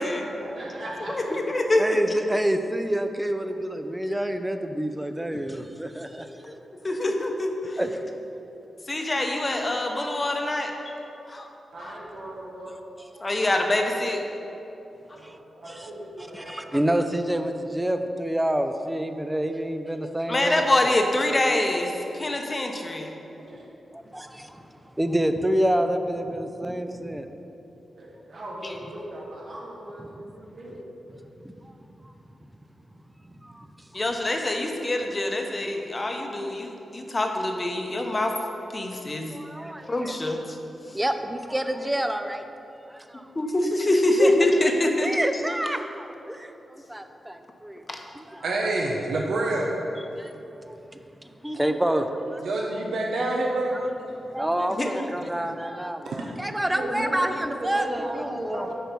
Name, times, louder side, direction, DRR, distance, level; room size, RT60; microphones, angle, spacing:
voice 1, 0.4-1.3 11.7-12.8 15.1-17.0 23.4-23.6 27.9-30.8 56.4-58.7, right 1 dB, 55° right, -5 dB, 1.4 m, -37 dB
voice 2, 1.1-2.0 6.8-7.8 8.9-10.7 11.3-11.5 13.2-14.2 20.3-23.1 28.6-28.7 33.9-38.3 38.7-39.3 39.9-40.4 43.4-45.2 47.9-48.0 54.8-55.0, left 1 dB, 25° left, 3 dB, 0.8 m, -25 dB
voice 3, 1.8-6.3 7.8-8.0 13.4-13.5 15.2-15.4 15.7-15.9 16.3-20.9 23.9-27.3 30.1-30.3 31.4-31.7 32.0-32.1 33.4-33.7 39.3-40.2 40.9-42.4 42.9-43.3 44.2-44.3 45.0-47.8 48.1-48.5 50.2-50.3 51.4-52.4 53.7-53.9 54.3-58.7, right 1 dB, 10° right, 7 dB, 0.4 m, -28 dB
voice 4, 48.4-49.7 52.4-53.7 56.0-56.3, right 2 dB, 85° right, -1 dB, 0.8 m, -26 dB
8.8 x 4.6 x 5.3 m, 2.9 s
wide cardioid pair, 140°, 0 cm